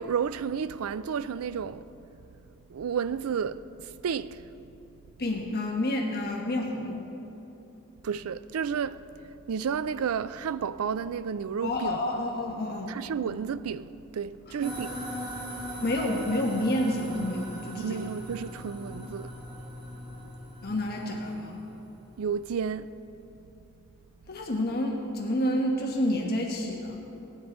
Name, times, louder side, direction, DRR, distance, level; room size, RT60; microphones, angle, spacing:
voice 1, 0.0-1.9 2.7-4.5 8.0-12.0 12.9-15.0 17.8-19.3 22.2-22.9, right 7 dB, 80° right, 0.4 m, -32 dB
voice 2, 5.2-7.0 11.6-12.9 14.5-14.6 15.8-18.0 20.6-21.6 24.3-27.0, left 1 dB, 45° left, 1.2 m, -29 dB
sound 1, 14.6-22.2, equal, 20° right, 1.7 m, -40 dB
17.5 x 9.7 x 4.3 m
head